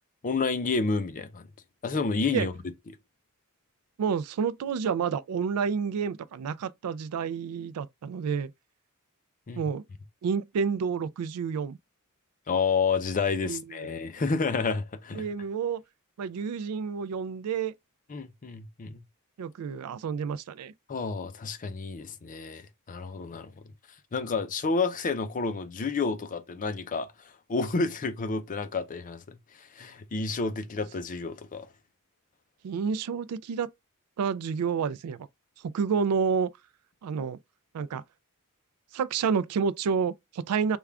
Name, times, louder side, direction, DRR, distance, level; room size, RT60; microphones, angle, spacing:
voice 1, 0.2-1.4 1.8-2.5 9.5-9.7 12.5-15.2 18.1-19.0 20.9-23.5 24.1-27.1 27.5-29.2 29.8-31.7, left 4 dB, 35° left, 0.5 m, -30 dB
voice 2, 4.0-8.5 9.6-9.8 10.2-11.8 13.5-13.9 15.1-15.8 16.2-17.7 19.4-20.7 32.6-33.7 34.2-35.3 35.6-36.5 37.0-37.4 37.7-38.0 38.9-40.8, right 6 dB, 80° right, 0.3 m, -29 dB
3.5 x 2.3 x 3.4 m
head